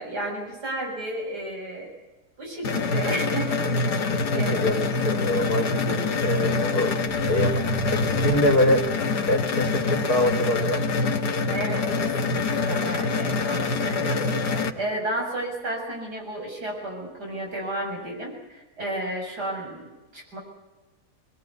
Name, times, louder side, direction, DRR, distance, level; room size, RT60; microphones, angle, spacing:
voice 1, 0.0-1.9 2.4-4.0 4.3-4.7 11.5-20.4, right 1 dB, 85° right, 0 dB, 7.7 m, -33 dB
sound 1, 2.6-14.7, left 3 dB, 90° left, 2.1 m, -25 dB
voice 2, 4.1-11.1, left 1 dB, 70° left, 6 dB, 3.7 m, -25 dB
sound 2, 7.1-10.6, right 2 dB, 5° right, 1.1 m, -40 dB
23.0 x 20.5 x 9.4 m, 1.1 s
omnidirectional pair, 1.7 m